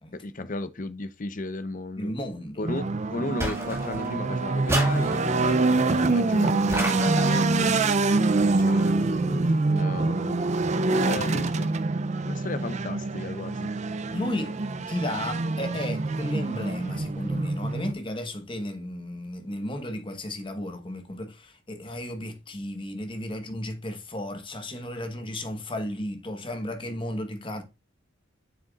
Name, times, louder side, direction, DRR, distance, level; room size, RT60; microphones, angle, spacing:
voice 1, 0.1-2.1 2.6-7.7 8.6-10.4 10.7-11.8 12.2-13.7, left 2 dB, 40° left, 0.7 m, -35 dB
voice 2, 2.0-2.6 14.1-14.5 14.9-27.6, left 1 dB, 25° left, 1.3 m, -34 dB
sound 1, 2.6-17.9, right 3 dB, 35° right, 0.5 m, -25 dB
sound 2, 3.4-4.2 4.7-5.6 6.7-7.5, right 1 dB, 15° right, 2.0 m, -31 dB
7.8 x 6.5 x 2.4 m
head